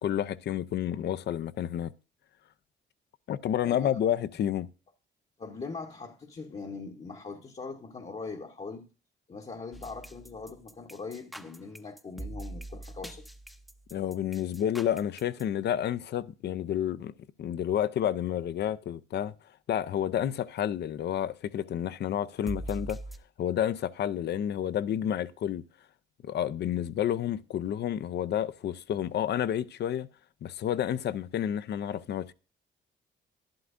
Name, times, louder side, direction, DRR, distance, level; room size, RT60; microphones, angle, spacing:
voice 1, 0.0-1.9 3.3-4.7 13.9-17.1 17.4-19.3 19.7-23.0 23.4-25.6 26.2-30.1 30.4-32.3, left 10 dB, 60° left, 0.5 m, -30 dB
voice 2, 5.4-8.9 9.3-13.2, left 4 dB, 35° left, 0.9 m, -41 dB
sound 1, 9.7-15.4 22.5-23.2, right 2 dB, ahead, 0.7 m, -42 dB
11.5 x 11.0 x 2.5 m
cardioid pair, 90°, 20 cm